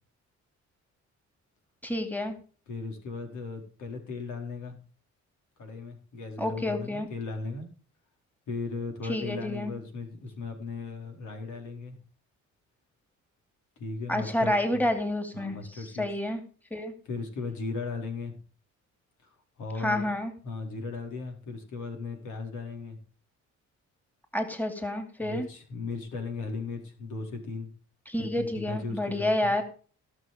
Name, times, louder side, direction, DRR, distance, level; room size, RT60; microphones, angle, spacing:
voice 1, 1.8-2.3 6.4-7.1 9.1-9.7 14.1-15.6 16.0-16.4 16.7-16.9 19.8-20.3 24.3-25.5 28.1-29.6, left 1 dB, 5° left, 7 dB, 2.6 m, -29 dB
voice 2, 2.7-4.8 5.6-7.7 8.5-12.0 13.8-14.9 15.3-16.1 17.0-18.4 19.2-20.1 20.4-23.0 25.2-27.7 28.2-29.5, left 4 dB, 75° left, 3 dB, 4.5 m, -37 dB
17.5 x 6.3 x 5.1 m, 0.40 s
cardioid pair, 90°, 30 cm